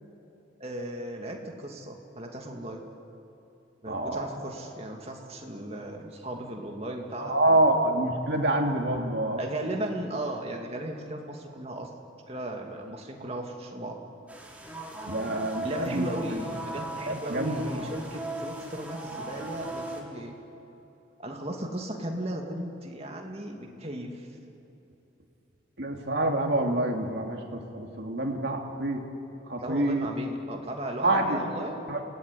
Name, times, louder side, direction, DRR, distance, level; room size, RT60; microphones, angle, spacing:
voice 1, 0.6-2.8 3.8-7.8 9.4-11.9 12.3-14.0 15.6-20.4 21.2-24.3 29.6-31.8, right 1 dB, 30° right, 2 dB, 2.4 m, -36 dB
voice 2, 3.9-4.3 7.2-9.4 15.1-16.1 17.1-17.6 25.8-29.0 29.5-30.1 31.0-31.4 31.9-32.0, right 1 dB, 55° right, 1 dB, 2.8 m, -26 dB
sound 1, 14.3-20.0, right 2 dB, 10° right, 3.1 m, -38 dB
29.0 x 18.0 x 9.8 m, 2.9 s
head